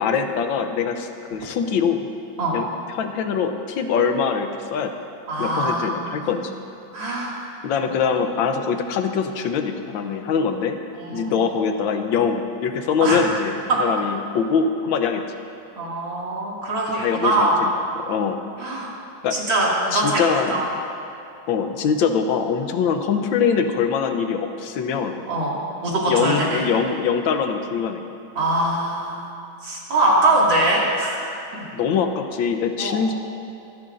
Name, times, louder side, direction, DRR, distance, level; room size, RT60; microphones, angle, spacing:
voice 1, 0.0-2.1 2.5-5.0 5.4-6.5 7.6-10.8 11.1-15.2 17.0-18.4 19.2-19.4 19.9-20.6 21.5-25.2 26.1-28.1 31.7-33.1, left 6 dB, 85° left, 6 dB, 1.5 m, -23 dB
voice 2, 5.3-6.3 6.9-7.3 11.0-11.3 13.0-13.2 13.7-13.8 15.8-17.6 18.6-18.9 19.3-20.7 25.3-26.7 28.3-29.3 29.6-31.1 31.5-31.6 32.8-33.0, right 2 dB, 75° right, -5 dB, 3.1 m, -22 dB
24.5 x 11.0 x 2.6 m, 2.7 s
omnidirectional pair, 2.1 m